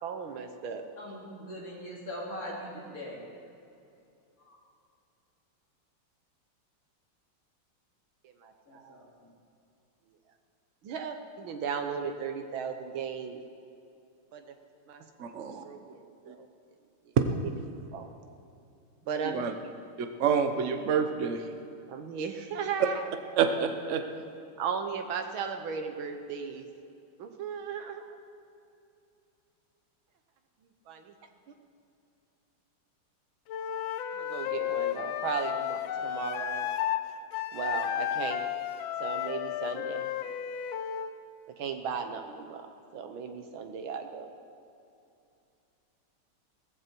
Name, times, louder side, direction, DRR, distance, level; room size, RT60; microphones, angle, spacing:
voice 1, 0.0-0.9 8.2-9.0 10.8-13.4 14.3-14.4 14.9-15.4 15.6-16.5 17.4-18.1 19.1-19.7 21.9-23.1 24.6-26.7 27.2-28.2 30.9-31.1 34.1-36.7 37.5-38.5 39.0-40.1 41.6-42.7 42.9-44.3, right 6 dB, 70° right, 6 dB, 1.8 m, -36 dB
voice 2, 1.0-3.2 4.5-4.6 8.7-9.1, equal, 40° left, -3 dB, 3.0 m, -41 dB
voice 3, 15.2-15.6 16.3-16.4 19.2-19.5 20.0-21.4 23.4-24.0, right 6 dB, 50° right, 7 dB, 0.9 m, -28 dB
Wind instrument woodwind instrument, 33.5-37.0 37.3-41.1, left 11 dB, 70° left, 1.3 m, -33 dB
16.5 x 15.0 x 4.6 m, 2.6 s
omnidirectional pair, 2.4 m